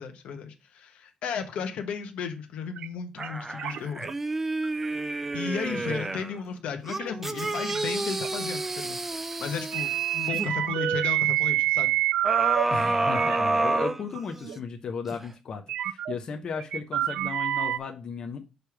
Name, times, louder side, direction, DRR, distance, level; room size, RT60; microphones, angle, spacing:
voice 1, 0.0-4.1 5.3-11.9, left 6 dB, 80° left, 6 dB, 1.2 m, -34 dB
sound 1, 2.8-2.9 3.2-3.3 3.6-4.1 4.6-4.8 5.3-5.4 7.0-7.1 7.5-7.8 8.2-8.3 9.7-12.6 13.0-13.4 14.1-14.2 14.4-14.6 15.7-16.1 16.6-17.8, right 14 dB, 85° right, 0.4 m, -27 dB
sound 2, 3.2-6.3 6.9-10.5 12.2-14.6 15.1-15.2, right 2 dB, 15° right, 0.3 m, -29 dB
voice 2, 5.7-6.0 12.7-18.4, left 5 dB, 40° left, 2 dB, 0.8 m, -35 dB
6.6 x 3.3 x 5.8 m, 0.29 s
cardioid pair, 170°, 2 cm